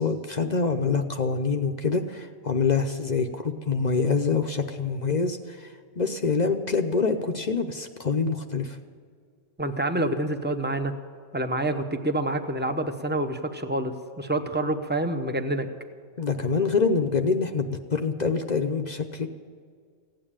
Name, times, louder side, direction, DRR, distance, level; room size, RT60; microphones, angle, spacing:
voice 1, 0.0-8.8 16.2-19.3, left 4 dB, 40° left, 6 dB, 0.8 m, -26 dB
voice 2, 9.6-10.9 11.3-15.7, right 1 dB, 10° right, 7 dB, 0.7 m, -27 dB
16.0 x 9.2 x 8.9 m, 2.1 s
omnidirectional pair, 1.3 m